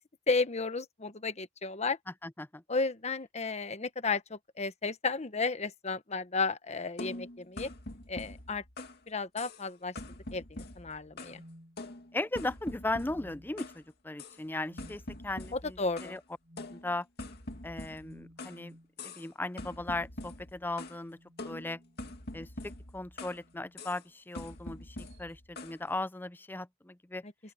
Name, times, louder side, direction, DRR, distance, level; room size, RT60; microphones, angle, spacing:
voice 1, 0.3-2.0 2.7-7.7 8.1-8.6 9.1-9.9 10.3-11.4 15.5-16.2 27.2-27.3, left 4 dB, 35° left, 1.1 m, -33 dB
voice 2, 2.2-2.6 12.1-16.2 16.7-17.1 17.6-18.8 19.0-21.2 21.4-21.8 22.3-27.2, left 2 dB, 10° left, 0.5 m, -37 dB
sound 1, 7.0-9.0 9.4-9.7 10.0-11.4 11.8-13.8 14.2-14.4 14.8-16.2 16.6-18.6 19.0-19.3 19.6-21.0 21.4-23.4 23.8-24.0 24.3-25.8, left 2 dB, 55° left, 2.2 m, -44 dB
sound 2, 11.0-12.3 12.9-13.7 14.5-15.0 16.4-16.8 17.9-19.0 20.4-22.3 23.4-23.8 25.0-25.3, equal, 45° right, 5.1 m, -57 dB
open air
head